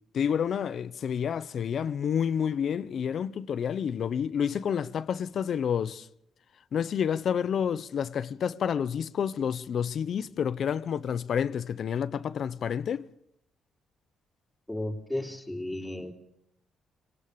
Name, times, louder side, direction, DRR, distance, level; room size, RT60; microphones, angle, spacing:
voice 1, 0.1-6.1 6.7-13.1, left 8 dB, 60° left, 0.9 m, -29 dB
voice 2, 14.7-16.1, left 1 dB, 5° left, 3.9 m, -34 dB
26.5 x 19.5 x 7.0 m
cardioid pair, 90°, 0 cm